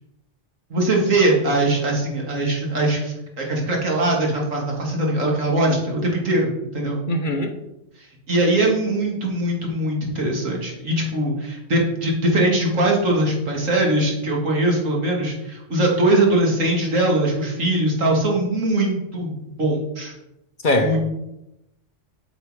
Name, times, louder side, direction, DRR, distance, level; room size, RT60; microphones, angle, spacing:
voice 1, 0.7-7.0 8.3-20.1 20.8-21.0, right 1 dB, 80° right, -1 dB, 2.5 m, -21 dB
voice 2, 7.1-7.5 20.6-21.0, left 1 dB, 45° left, 5 dB, 0.9 m, -21 dB
8.0 x 6.6 x 4.8 m, 0.89 s
omnidirectional pair, 1.3 m